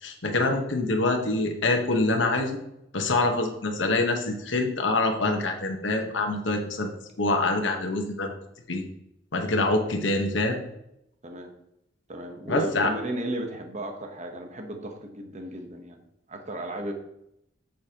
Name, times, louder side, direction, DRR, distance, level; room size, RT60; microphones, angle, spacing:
voice 1, 0.0-2.6 2.9-6.9 7.2-8.3 8.7-8.8 9.3-10.6 12.5-12.9, left 2 dB, 75° left, 3 dB, 1.2 m, -25 dB
voice 2, 12.1-16.0 16.3-16.9, right 1 dB, 40° right, 4 dB, 1.0 m, -34 dB
8.5 x 6.8 x 2.9 m, 0.79 s
head